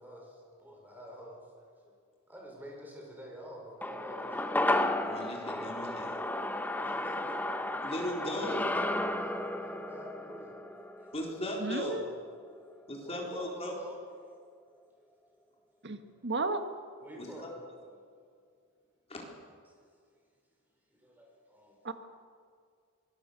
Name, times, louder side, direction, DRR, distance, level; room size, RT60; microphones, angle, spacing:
voice 1, 0.0-1.9 2.3-4.5 6.4-7.2 9.1-10.6 11.0-11.1 12.4-14.0 17.0-17.6 17.9-18.2 20.9-21.9, equal, 10° right, -1 dB, 5.5 m, -48 dB
sound 1, 3.8-12.3 12.6-12.7, left 1 dB, 10° left, 1.0 m, -33 dB
voice 2, 5.0-6.2 7.8-8.7 11.1-12.0 12.9-13.7 17.2-17.5 19.1-19.3, left 1 dB, 30° left, -1 dB, 4.1 m, -37 dB
voice 3, 11.6-12.2 15.8-16.6 21.8-21.9, right 3 dB, 50° right, 8 dB, 1.5 m, -34 dB
25.0 x 20.0 x 6.9 m, 2.2 s
head